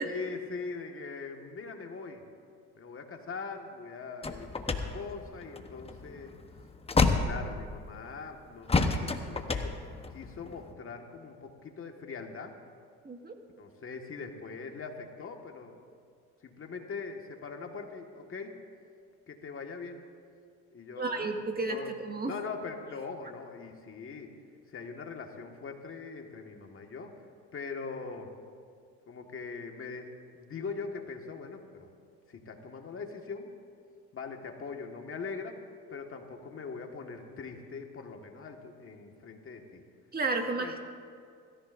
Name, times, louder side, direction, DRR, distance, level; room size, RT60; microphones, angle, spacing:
voice 1, 0.0-2.2 2.7-6.4 7.2-9.8 10.1-12.5 13.6-15.8 16.4-18.6 19.3-20.0 20.7-22.0 22.2-24.3 24.7-27.2 27.5-28.3 29.1-31.9 32.3-33.5 34.1-35.6 35.9-39.8 40.4-40.7, left 4 dB, 35° left, 3 dB, 1.8 m, -41 dB
sound 1, 4.2-8.1 8.7-10.7, left 3 dB, 15° left, 1.0 m, -30 dB
voice 2, 13.0-13.4 21.0-21.8 22.0-22.3 40.1-40.8, right 3 dB, 25° right, 3 dB, 1.9 m, -32 dB
23.5 x 14.0 x 2.6 m, 2.2 s
supercardioid pair, 85°, 36 cm